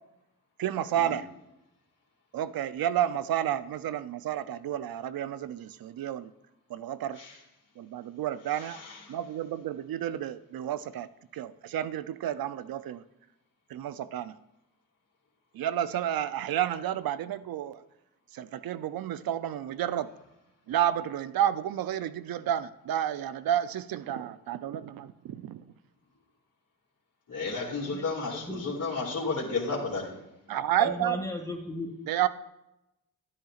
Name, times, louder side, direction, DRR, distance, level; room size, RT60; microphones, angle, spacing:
voice 1, 0.6-1.3 2.3-6.3 6.7-7.2 7.8-8.8 9.1-11.1 11.3-13.0 13.7-14.3 15.5-17.8 18.3-20.1 20.7-25.7 30.5-31.2 32.1-32.3, right 11 dB, 75° right, 13 dB, 0.6 m, -31 dB
voice 2, 8.6-9.2 27.3-30.2, left 3 dB, 55° left, -7 dB, 2.6 m, -33 dB
voice 3, 28.3-28.8 30.8-31.9, left 2 dB, 10° left, 1 dB, 2.3 m, -36 dB
12.0 x 10.5 x 2.5 m, 0.89 s
cardioid pair, 55°, 36 cm